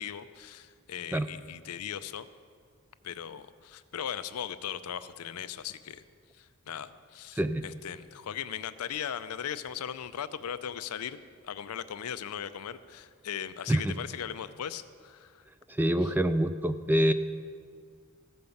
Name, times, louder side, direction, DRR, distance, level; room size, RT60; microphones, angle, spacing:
voice 1, 0.0-2.3 3.0-6.0 6.3-11.2 11.4-15.5 16.0-16.1, left 9 dB, 85° left, 13 dB, 0.5 m, -38 dB
voice 2, 15.7-17.1, right 1 dB, 10° right, 11 dB, 0.3 m, -26 dB
14.5 x 5.3 x 7.0 m, 2.1 s
head